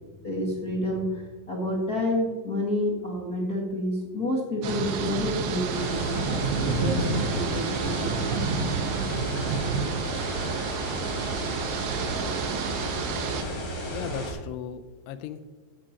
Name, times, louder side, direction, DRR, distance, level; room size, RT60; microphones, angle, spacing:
voice 1, 0.2-8.4 8.8-8.9, left 1 dB, 50° left, -4 dB, 1.1 m, -29 dB
sound 1, 4.6-13.4, right 5 dB, 80° right, 3.3 m, -29 dB
sound 2, 5.7-14.3, right 1 dB, 25° left, 4.0 m, -33 dB
voice 2, 13.9-15.4, left 9 dB, 80° left, 10 dB, 2.6 m, -37 dB
14.5 x 9.9 x 2.9 m, 1.3 s
omnidirectional pair, 5.0 m